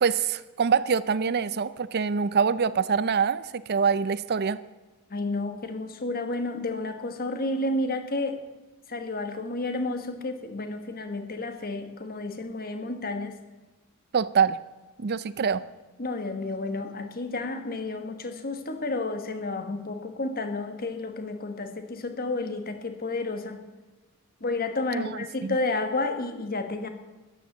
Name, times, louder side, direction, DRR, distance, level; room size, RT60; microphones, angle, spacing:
voice 1, 0.0-4.6 14.1-14.6 15.0-15.6 24.9-25.6, right 6 dB, 50° right, 16 dB, 0.5 m, -25 dB
voice 2, 5.1-8.4 8.9-13.4 16.0-23.6 24.4-26.9, left 2 dB, 45° left, 7 dB, 1.4 m, -31 dB
13.5 x 10.0 x 7.2 m, 1.2 s
head